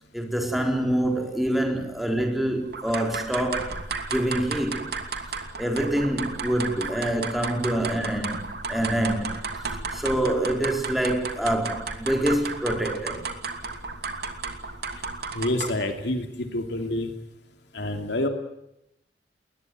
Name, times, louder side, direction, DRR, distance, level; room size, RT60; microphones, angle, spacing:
voice 1, 0.1-3.7 4.1-4.9 5.6-9.4 9.9-13.2, right 1 dB, ahead, 4.1 m, -26 dB
sound 1, 2.7-15.9, right 4 dB, 60° right, 2.7 m, -33 dB
voice 2, 15.3-17.1 17.7-18.3, left 1 dB, 70° left, 2.8 m, -27 dB
21.5 x 20.5 x 9.2 m
head